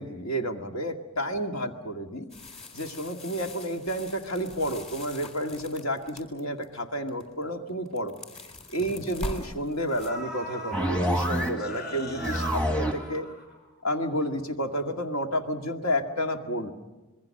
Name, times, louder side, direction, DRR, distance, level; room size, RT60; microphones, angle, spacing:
voice 1, 0.0-2.3 2.7-8.1 8.7-13.3 13.8-16.7, equal, 70° left, 3 dB, 2.0 m, -31 dB
sound 1, 2.3-6.7 7.1-7.4 7.7-10.1, left 1 dB, 30° left, 3.7 m, -41 dB
sound 2, 8.4-8.5 9.4-9.5 9.9-13.8 14.1-14.2, left 1 dB, 45° left, 6.0 m, -40 dB
sound 3, 10.7-11.7 12.0-13.1, equal, 5° left, 1.2 m, -27 dB
26.5 x 21.5 x 6.5 m, 1.1 s
head